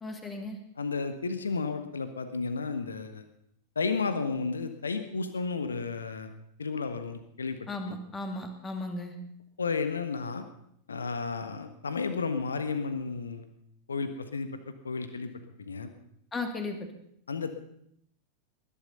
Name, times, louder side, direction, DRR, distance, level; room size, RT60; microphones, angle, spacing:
voice 1, 0.0-0.6 7.7-9.2 16.3-16.8, left 2 dB, 15° left, 5 dB, 2.6 m, -35 dB
voice 2, 0.8-3.2 3.7-6.3 6.6-7.6 7.9-8.0 9.6-10.4 10.9-13.5 13.9-14.5 14.8-15.3 15.6-15.9 17.3-17.6, left 4 dB, 75° left, 9 dB, 1.4 m, -32 dB
20.0 x 11.5 x 5.6 m, 0.72 s
figure-of-eight pair, 90°, 0 cm